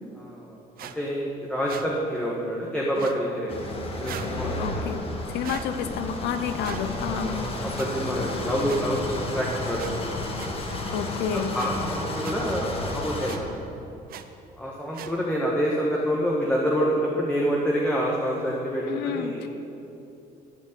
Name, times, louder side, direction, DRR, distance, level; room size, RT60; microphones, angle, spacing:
voice 1, 0.2-3.6 4.0-5.1 7.1-9.0 9.3-9.8 10.1-10.3 11.3-13.5 14.6-19.4, equal, 5° left, -4 dB, 1.5 m, -27 dB
sound 1, 0.8-0.9 1.6-1.9 2.9-3.2 4.0-4.3 5.4-5.7 6.6-6.8 7.8-7.9 8.7-8.8 9.8-9.9 10.4-10.5 11.5-11.7 12.2-12.3 13.3-13.4 14.1-14.2 14.9-15.1, right 10 dB, 60° right, 0.7 m, -38 dB
sound 2, 3.5-13.4, left 2 dB, 35° left, 1.7 m, -32 dB
voice 2, 4.6-7.5 10.9-11.6 18.9-19.5, left 7 dB, 80° left, 9 dB, 0.9 m, -30 dB
14.0 x 5.3 x 8.4 m, 2.8 s
cardioid pair, 110°, 17 cm